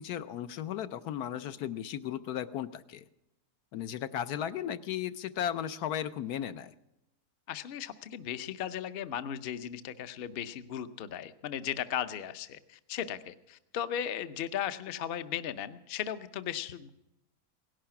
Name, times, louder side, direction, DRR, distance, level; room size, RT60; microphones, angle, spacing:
voice 1, 0.0-3.0 3.7-6.7, left 10 dB, 75° left, 12 dB, 1.2 m, -35 dB
voice 2, 7.5-16.9, left 9 dB, 55° left, 12 dB, 0.7 m, -36 dB
17.5 x 11.5 x 5.9 m, 0.89 s
omnidirectional pair, 1.7 m